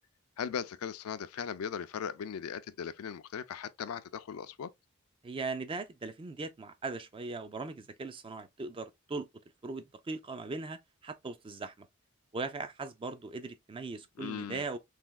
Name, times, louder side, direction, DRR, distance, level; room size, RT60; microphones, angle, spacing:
voice 1, 0.4-4.7 14.2-14.7, left 7 dB, 90° left, 0.4 m, -38 dB
voice 2, 5.2-9.3 9.6-11.9 12.3-14.8, right 3 dB, 25° right, 0.3 m, -39 dB
3.3 x 2.7 x 2.2 m
head